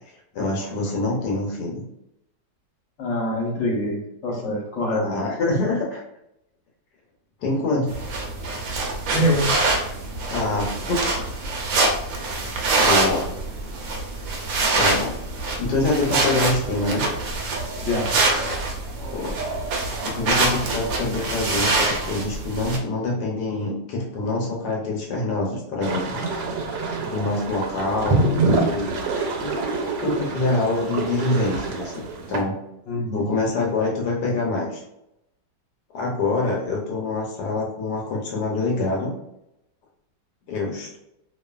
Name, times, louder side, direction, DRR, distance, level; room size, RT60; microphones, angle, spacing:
voice 1, 0.3-1.8 4.9-6.0 7.4-8.0 10.3-11.0 12.8-13.3 14.7-15.2 15.6-17.1 19.1-19.4 20.0-26.2 27.0-28.3 28.6-29.6 30.0-32.6 33.1-34.8 35.9-39.1 40.5-41.0, left 2 dB, 75° left, -2 dB, 1.2 m, -25 dB
voice 2, 3.0-5.1 9.1-9.4 17.8-18.1 32.9-33.3, left 1 dB, 50° left, -3 dB, 1.0 m, -24 dB
sound 1, 7.9-22.8, right 3 dB, 70° right, 0.9 m, -25 dB
sound 2, 25.8-32.4, right 3 dB, 90° right, 1.2 m, -26 dB
2.6 x 2.5 x 2.2 m, 0.83 s
omnidirectional pair, 1.9 m